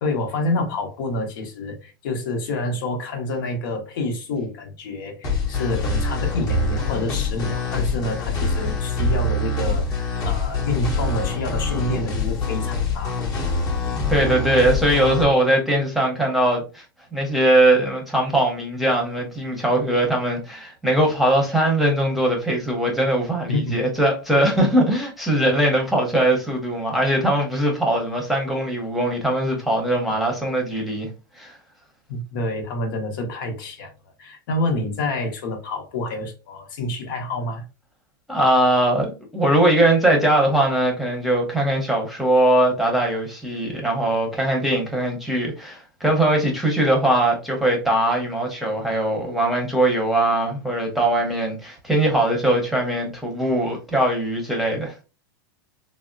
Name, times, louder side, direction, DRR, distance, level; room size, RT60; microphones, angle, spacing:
voice 1, 0.0-13.2 23.5-23.7 32.1-33.9 34.2-37.6, left 2 dB, 70° left, 0.9 m, -28 dB
sound 1, 5.2-15.2, left 3 dB, 30° left, 0.9 m, -24 dB
voice 2, 14.1-16.8 17.1-31.1 31.4-31.5 38.3-54.9, right 1 dB, ahead, 0.8 m, -21 dB
3.4 x 2.1 x 2.4 m
hypercardioid pair, 125°, 11 cm